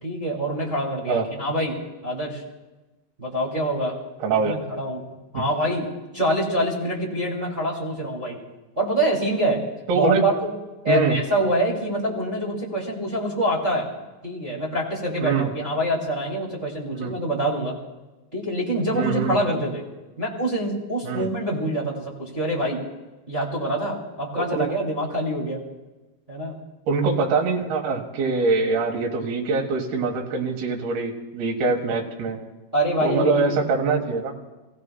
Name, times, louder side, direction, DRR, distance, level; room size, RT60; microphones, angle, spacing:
voice 1, 0.0-1.7 2.0-2.4 3.2-4.0 4.3-5.8 6.1-8.4 8.8-9.6 9.9-10.5 10.8-13.9 14.2-17.8 18.3-19.8 20.2-22.8 23.3-25.6 26.3-26.6 32.7-33.5, right 1 dB, 15° right, -5 dB, 2.0 m, -25 dB
voice 2, 4.2-4.6 5.3-5.4 9.9-10.2 10.9-11.2 15.2-15.5 16.9-17.1 18.9-19.4 21.0-21.3 24.4-24.7 26.9-32.4 33.0-34.3, right 4 dB, 75° right, 1 dB, 3.4 m, -23 dB
28.0 x 16.0 x 2.3 m, 1.1 s
omnidirectional pair, 4.5 m